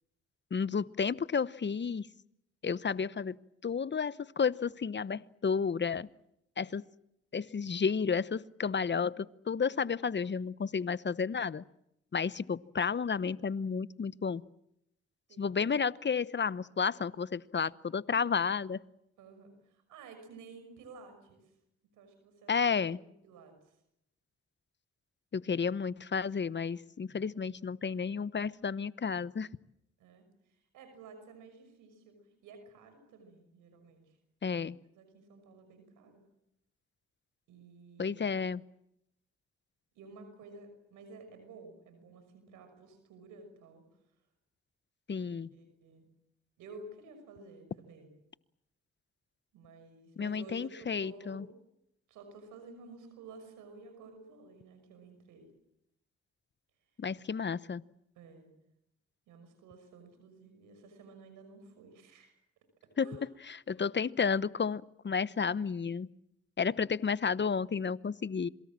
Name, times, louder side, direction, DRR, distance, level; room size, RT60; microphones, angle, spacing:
voice 1, 0.5-2.1 2.6-3.4 3.6-6.1 6.6-6.8 7.3-11.6 12.1-14.4 15.4-18.8 22.5-23.0 25.3-29.5 34.4-34.8 38.0-38.6 45.1-45.5 50.2-51.5 57.0-57.8 63.0-63.1 63.5-66.1 66.6-68.5, left 6 dB, 35° left, 18 dB, 1.0 m, -32 dB
voice 2, 9.7-10.1 15.3-15.5 19.2-21.4 22.0-22.5 22.9-23.7 30.0-32.1 32.4-34.1 34.9-36.2 37.5-38.4 40.0-43.8 45.2-46.1 46.6-48.1 49.5-51.6 52.1-55.5 58.2-58.5 59.3-62.3 63.0-63.3, right 3 dB, 85° right, 7 dB, 6.0 m, -53 dB
27.0 x 23.0 x 7.5 m, 0.80 s
supercardioid pair, 45°, 30 cm